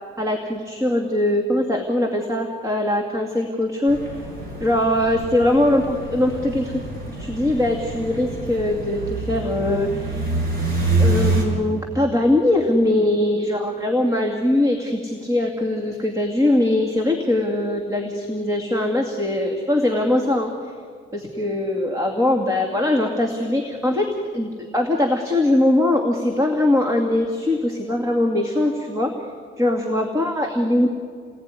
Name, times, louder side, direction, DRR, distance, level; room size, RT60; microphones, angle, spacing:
voice 1, 0.2-4.2 4.6-6.8 7.1-10.3 11.0-20.7 21.1-29.1 29.6-30.9, left 1 dB, 15° right, 2 dB, 2.3 m, -21 dB
sound 1, 3.9-11.4, right 2 dB, 45° right, 6.9 m, -26 dB
29.0 x 20.0 x 9.8 m, 2.1 s
cardioid pair, 175°, 21 cm